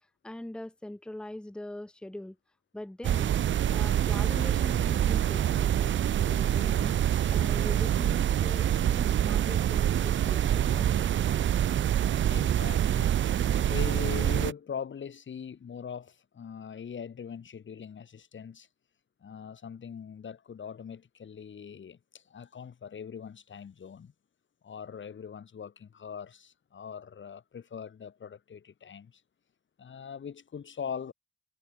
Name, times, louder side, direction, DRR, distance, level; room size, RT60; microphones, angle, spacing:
voice 1, 0.2-2.4 2.7-3.3 3.7-7.0 7.3-11.2, left 1 dB, 5° left, 0.8 m, -42 dB
sound 1, 3.0-14.5, right 10 dB, 85° right, 0.4 m, -26 dB
voice 2, 12.3-13.2 13.6-18.7 19.2-24.1 24.6-29.2 29.8-31.1, left 7 dB, 90° left, 2.9 m, -41 dB
wide cardioid pair, 125°, 19 cm